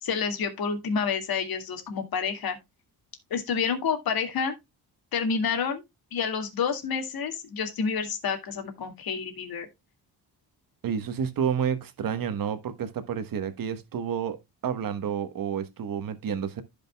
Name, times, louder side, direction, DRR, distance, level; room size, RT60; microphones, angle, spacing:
voice 1, 0.0-2.6 3.3-4.5 5.1-5.8 6.1-9.7, left 6 dB, 60° left, 2.1 m, -29 dB
voice 2, 10.8-14.4 14.6-16.6, right 7 dB, 55° right, 1.3 m, -30 dB
15.0 x 5.3 x 2.3 m
cardioid pair, 135°, 40 cm